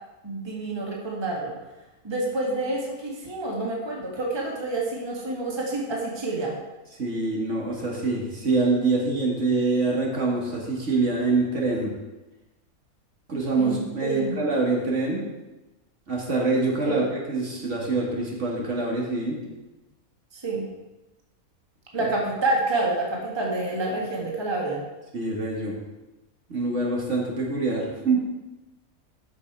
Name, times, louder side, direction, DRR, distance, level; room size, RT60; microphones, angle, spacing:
voice 1, 0.2-1.5 2.0-6.5 13.6-14.4 16.8-17.0 20.3-20.6 21.9-24.8, right 2 dB, 20° right, -2 dB, 1.6 m, -28 dB
voice 2, 7.0-11.9 13.3-15.2 16.1-19.4 25.1-25.8 26.5-28.2, right 3 dB, 55° right, -3 dB, 2.1 m, -25 dB
12.5 x 5.7 x 4.6 m, 1.1 s
omnidirectional pair, 1.5 m